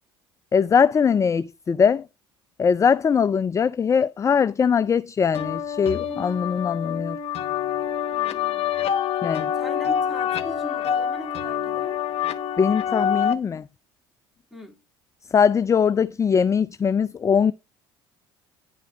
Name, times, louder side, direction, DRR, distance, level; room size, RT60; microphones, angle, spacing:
voice 1, 0.5-2.0 2.6-7.2 9.2-9.5 12.6-13.6 15.3-17.5, left 6 dB, 20° left, 0.4 m, -21 dB
sound 1, 5.3-13.3, left 9 dB, 50° left, 1.1 m, -26 dB
voice 2, 8.1-8.8 9.5-12.0 14.5-14.8, left 2 dB, 5° right, 2.9 m, -40 dB
10.0 x 5.1 x 4.9 m
hypercardioid pair, 65°, 14 cm